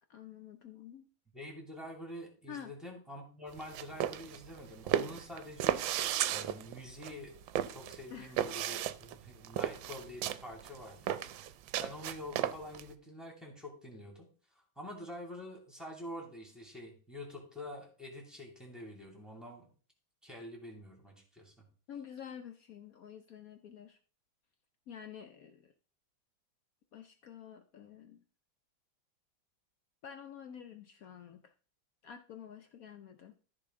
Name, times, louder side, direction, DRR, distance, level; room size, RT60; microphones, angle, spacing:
voice 1, 0.1-1.1 2.5-2.7 8.1-8.3 21.9-24.0 24.9-25.7 26.9-28.2 30.0-31.5 32.0-33.4, left 8 dB, 80° left, 7 dB, 0.8 m, -49 dB
voice 2, 1.3-14.3 14.5-19.7 20.2-21.6, left 1 dB, ahead, 0 dB, 2.4 m, -47 dB
sound 1, 3.5-12.9, right 11 dB, 75° right, 1.3 m, -35 dB
13.5 x 5.0 x 3.7 m, 0.39 s
omnidirectional pair, 2.2 m